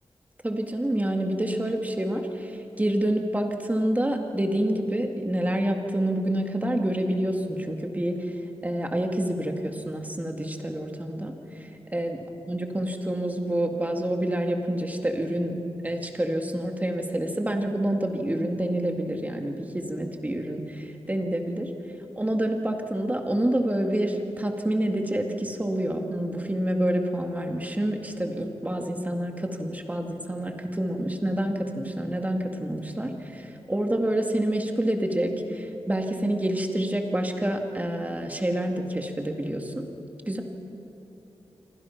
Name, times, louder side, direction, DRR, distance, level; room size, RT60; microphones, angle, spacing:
voice 1, 0.4-8.2 8.6-11.3 11.9-12.2 12.5-15.6 15.8-21.7 22.2-39.8 40.3-40.4, right 1 dB, 15° right, 3 dB, 2.1 m, -27 dB
27.0 x 24.5 x 5.9 m, 3.0 s
wide cardioid pair, 115°, 10 cm